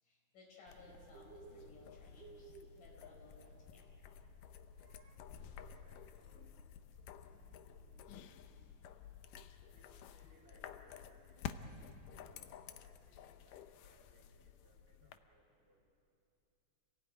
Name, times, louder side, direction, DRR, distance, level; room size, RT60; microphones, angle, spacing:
voice 1, 0.0-3.8 14.0-14.1, left 3 dB, 70° left, -2 dB, 6.9 m, -61 dB
Bird, 0.6-12.8, right 4 dB, 75° right, 2.4 m, -63 dB
sound 1, 0.7-15.2, left 8 dB, 90° left, 2.5 m, -52 dB
sound 2, 0.9-3.1 7.3-10.5, right 5 dB, 55° right, 1.1 m, -72 dB
voice 2, 5.4-6.6 9.7-11.8 12.1-15.8, equal, 15° right, -2 dB, 5.1 m, -70 dB
27.5 x 17.5 x 9.1 m, 2.6 s
omnidirectional pair, 3.8 m